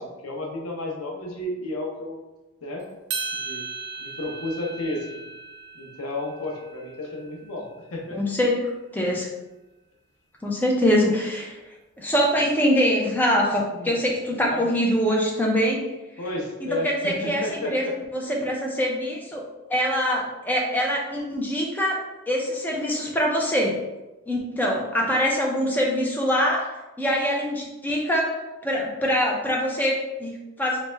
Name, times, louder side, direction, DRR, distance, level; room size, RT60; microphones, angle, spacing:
voice 1, 0.0-2.2 2.6-2.9 3.3-3.6 4.0-5.2 5.7-8.2 13.7-13.9 14.4-14.7 16.2-17.9, left 2 dB, 90° left, 0 dB, 0.7 m, -32 dB
sound 1, 3.1-7.5, right 5 dB, 50° right, 0.4 m, -36 dB
voice 2, 8.1-9.3 10.4-11.6 12.0-15.8 16.7-19.4 19.7-23.8 24.3-28.3 28.6-30.8, equal, 10° left, -2 dB, 0.4 m, -24 dB
3.3 x 2.1 x 3.2 m, 1.1 s
head